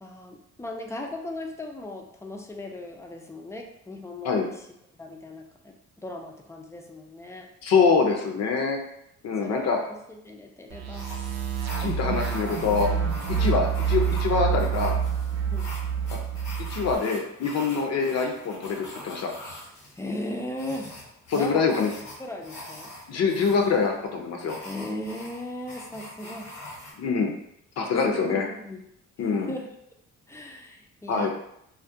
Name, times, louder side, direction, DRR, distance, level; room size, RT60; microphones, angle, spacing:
voice 1, 0.0-4.7 4.9-7.5 9.4-11.1 13.4-13.7 15.5-15.7 19.4-19.5 20.0-21.0 21.3-21.7 22.2-22.9 24.6-26.5 27.9-28.8 29.2-29.7 30.3-31.3, left 1 dB, 10° left, 2 dB, 0.3 m, -37 dB
voice 2, 7.6-8.8 9.2-9.8 11.8-12.9 13.4-14.9 16.1-16.2 16.7-19.3 21.3-21.9 23.1-24.6 27.0-27.3 27.8-28.5 29.2-29.5 31.1-31.3, left 5 dB, 60° left, 2 dB, 0.5 m, -24 dB
sound 1, 10.7-16.9, right 7 dB, 60° right, 0.5 m, -27 dB
sound 2, 10.9-26.9, left 1 dB, 90° left, 1.1 m, -43 dB
2.3 x 2.1 x 2.6 m, 0.76 s
cardioid pair, 90°, 30 cm